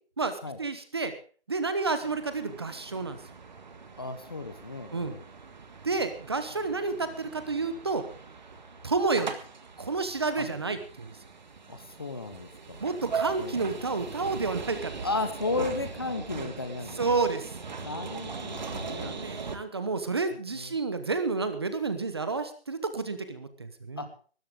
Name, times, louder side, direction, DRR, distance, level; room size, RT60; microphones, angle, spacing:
voice 1, 0.2-1.1 1.5-3.2 4.9-5.1 5.8-8.0 8.8-9.3 9.8-11.1 12.8-14.9 17.0-17.5 18.8-24.1, right 3 dB, 25° right, 10 dB, 1.0 m, -30 dB
sound 1, 2.0-19.6, right 5 dB, 45° right, 1.9 m, -40 dB
voice 2, 4.0-5.2 10.4-10.5 11.7-12.8 13.4-13.7 15.0-17.2 17.8-19.3 20.5-20.7 24.0-24.1, left 3 dB, 25° left, 10 dB, 0.9 m, -34 dB
18.5 x 13.5 x 3.7 m, 0.40 s
hypercardioid pair, 175°, 32 cm